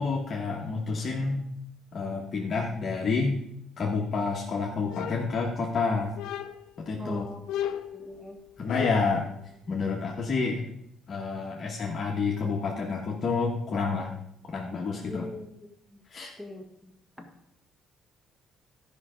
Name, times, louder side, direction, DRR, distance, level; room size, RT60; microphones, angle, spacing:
voice 1, 0.0-1.4 1.9-3.4 3.8-6.1 6.8-7.2 8.6-9.3 9.7-10.7 11.1-14.1 14.5-15.3 16.1-16.3, left 4 dB, 35° left, -2 dB, 1.2 m, -29 dB
sound 1, 4.9-5.8 6.2-6.8 7.5-9.2, left 11 dB, 85° left, 0.7 m, -35 dB
voice 2, 7.0-7.5 7.9-8.4 15.0-15.5 15.9-16.0 16.4-16.9 17.2-17.3, left 1 dB, 10° right, 3 dB, 1.6 m, -41 dB
13.0 x 5.5 x 5.0 m, 0.77 s
cardioid pair, 135°, 0 cm